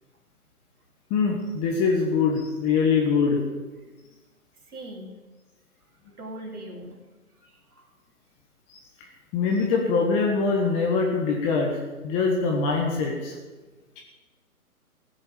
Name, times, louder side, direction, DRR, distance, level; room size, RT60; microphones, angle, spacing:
voice 1, 1.1-3.4 8.7-8.8 9.3-11.8 12.0-13.3 14.0-14.1, left 4 dB, 15° left, 1 dB, 1.1 m, -23 dB
voice 2, 4.7-5.1 6.2-7.0 7.4-7.9, right 1 dB, 85° right, -1 dB, 3.5 m, -40 dB
15.0 x 8.0 x 7.5 m, 1.2 s
hypercardioid pair, 145°, 45 cm